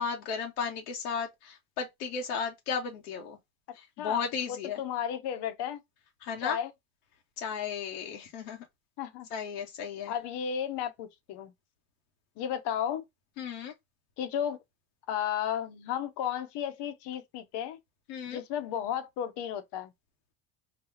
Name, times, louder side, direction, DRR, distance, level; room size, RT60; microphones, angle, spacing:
voice 1, 0.0-3.4 3.7-4.8 6.2-6.6 7.4-8.6 9.3-10.1 13.4-13.7 18.1-18.4, left 6 dB, 85° left, 1.1 m, -34 dB
voice 2, 4.5-5.8 6.4-6.7 9.0-9.3 10.1-11.5 12.4-13.0 14.2-14.6 15.1-17.8 18.3-19.9, left 9 dB, 65° left, 1.0 m, -33 dB
4.1 x 2.3 x 2.8 m
supercardioid pair, 80°, 44 cm